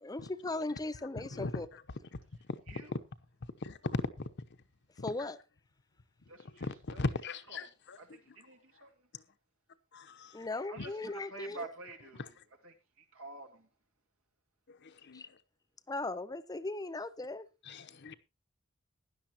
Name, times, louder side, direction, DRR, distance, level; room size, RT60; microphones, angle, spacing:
voice 1, 0.0-1.7 5.0-5.4 10.3-11.7 15.1-15.3 15.9-17.5, left 2 dB, 20° left, 0.6 m, -38 dB
voice 2, 1.3-1.6 3.6-4.0 6.4-8.0 8.3-8.4 9.1-9.2 9.9-10.5 10.8-10.9 12.2-12.3 14.7-15.4 17.7-18.1, left 3 dB, 60° left, 0.9 m, -38 dB
voice 3, 6.3-7.0 7.5-7.6 8.1-8.9 10.5-10.9 11.3-12.3 12.6-13.7, right 3 dB, 85° right, 2.3 m, -48 dB
16.5 x 11.0 x 2.9 m
head